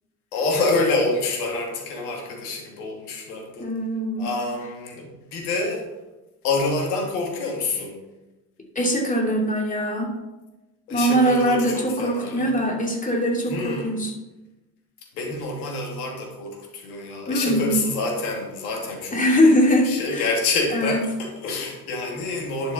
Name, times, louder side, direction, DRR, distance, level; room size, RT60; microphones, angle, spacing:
voice 1, 0.3-3.7 4.2-5.9 6.4-8.0 10.9-12.7 13.5-13.9 15.2-19.4 19.8-22.7, left 3 dB, 75° left, 1 dB, 2.6 m, -27 dB
voice 2, 3.6-4.3 8.7-10.2 10.9-14.1 17.3-17.8 19.1-20.3 20.7-21.0, equal, 15° left, 1 dB, 2.6 m, -22 dB
11.0 x 6.2 x 4.2 m, 1.1 s
hypercardioid pair, 70°, 44 cm